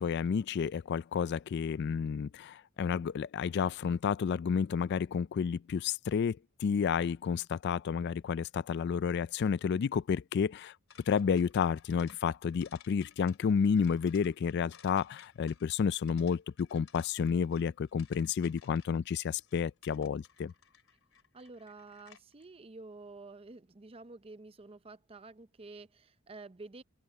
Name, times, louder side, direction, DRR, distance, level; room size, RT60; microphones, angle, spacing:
voice 1, 0.0-10.7 11.1-20.5, left 6 dB, 55° left, 0.3 m, -31 dB
sound 1, 10.9-22.4, left 9 dB, 75° left, 3.1 m, -60 dB
voice 2, 21.3-26.8, right 3 dB, 30° right, 0.6 m, -50 dB
open air
head